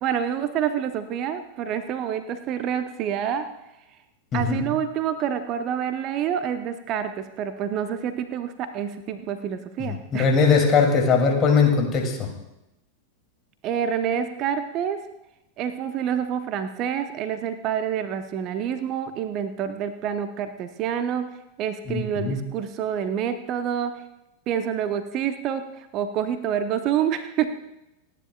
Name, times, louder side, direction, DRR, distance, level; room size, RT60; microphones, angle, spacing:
voice 1, 0.0-3.5 4.3-10.3 13.6-15.0 15.6-21.3 21.6-24.0 24.5-27.6, right 8 dB, 35° right, 10 dB, 0.8 m, -27 dB
voice 2, 4.3-4.6 9.8-12.3 21.9-22.4, left 5 dB, 30° left, 2 dB, 2.6 m, -20 dB
29.5 x 10.0 x 2.3 m, 0.90 s
figure-of-eight pair, 90°, 0 cm